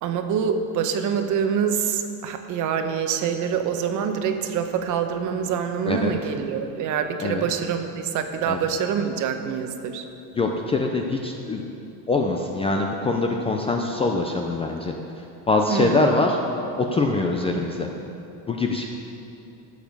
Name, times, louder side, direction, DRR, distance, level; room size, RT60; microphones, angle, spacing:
voice 1, 0.0-10.0 15.7-16.1, right 7 dB, 45° right, 7 dB, 0.9 m, -25 dB
voice 2, 10.3-11.6 12.1-14.9 15.5-16.4 16.8-17.9 18.5-18.9, left 3 dB, 15° left, 2 dB, 0.4 m, -23 dB
13.5 x 7.1 x 5.3 m, 2.8 s
supercardioid pair, 140°, 43 cm